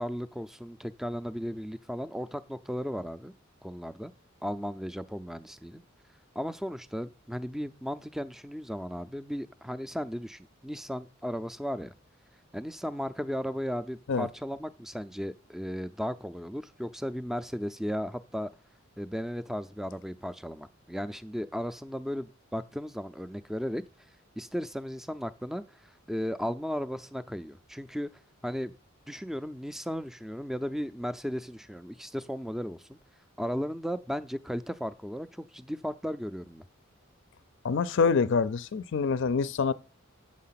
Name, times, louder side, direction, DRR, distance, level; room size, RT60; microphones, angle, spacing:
voice 1, 0.0-3.3 3.6-4.1 4.4-5.8 6.4-11.9 12.5-18.5 19.0-23.8 24.4-25.6 26.1-28.1 28.4-28.7 29.1-33.0 33.4-36.7, equal, ahead, 0.4 m, -35 dB
voice 2, 37.6-39.7, left 5 dB, 65° left, 0.5 m, -26 dB
8.4 x 6.7 x 5.7 m
head